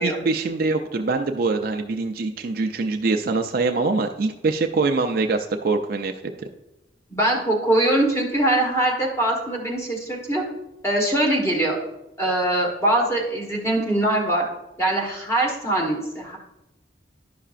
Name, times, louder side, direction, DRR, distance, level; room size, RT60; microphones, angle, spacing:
voice 1, 0.0-6.1, right 3 dB, 55° right, 5 dB, 0.4 m, -23 dB
voice 2, 7.1-10.4 10.8-11.8 12.2-14.5 14.8-16.4, right 1 dB, 15° left, -1 dB, 1.3 m, -22 dB
11.0 x 5.6 x 2.5 m, 0.93 s
head